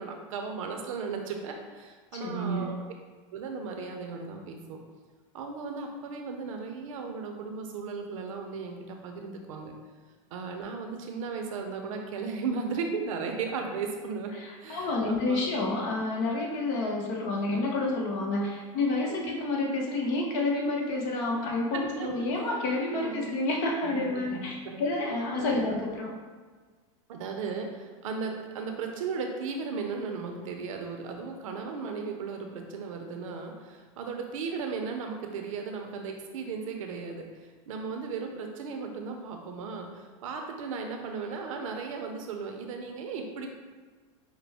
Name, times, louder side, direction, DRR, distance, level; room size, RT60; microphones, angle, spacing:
voice 1, 0.0-2.8 3.3-4.8 5.3-9.7 10.3-14.3 14.6-15.4 19.1-19.2 21.7-22.1 22.3-22.5 23.0-23.3 23.8-24.8 25.4-25.8 27.1-43.5, right 5 dB, 80° right, 3 dB, 0.7 m, -36 dB
voice 2, 2.2-2.7 14.3-26.1, left 2 dB, 60° left, -1 dB, 1.0 m, -29 dB
5.0 x 2.2 x 3.4 m, 1.4 s
supercardioid pair, 120°, 17 cm